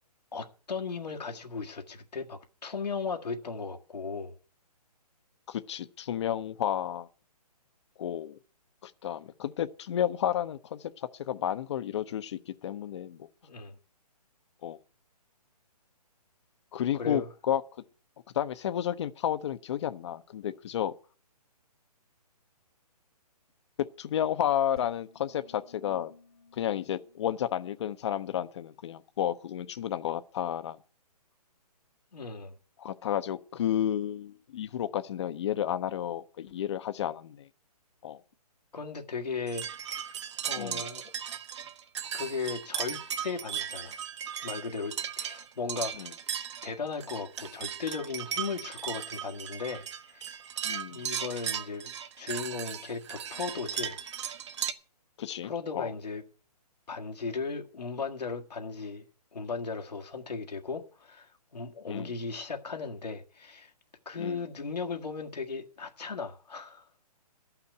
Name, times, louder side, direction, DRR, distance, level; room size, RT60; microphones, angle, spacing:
voice 1, 0.3-4.3 13.4-13.8 16.9-17.3 32.1-32.5 38.7-39.7 40.4-41.1 42.1-44.0 44.4-46.1 46.6-50.4 50.9-51.9 52.2-54.0 55.4-56.2 56.9-59.0 59.3-63.7 64.0-66.9, left 4 dB, 85° left, 1.7 m, -36 dB
voice 2, 5.5-7.1 8.0-8.4 8.8-13.3 14.6-14.8 16.7-17.6 18.3-20.9 24.0-26.1 26.6-30.8 32.8-37.5 38.0-38.2 40.6-40.8 46.0-46.1 50.6-51.1 55.2-55.9 61.9-62.1 64.2-64.4, left 10 dB, 45° left, 0.8 m, -32 dB
sound 1, 24.8-28.1, left 4 dB, 65° left, 1.5 m, -56 dB
sound 2, 39.5-54.7, right 9 dB, 45° right, 1.0 m, -37 dB
12.5 x 5.8 x 9.1 m
hypercardioid pair, 145°, 20 cm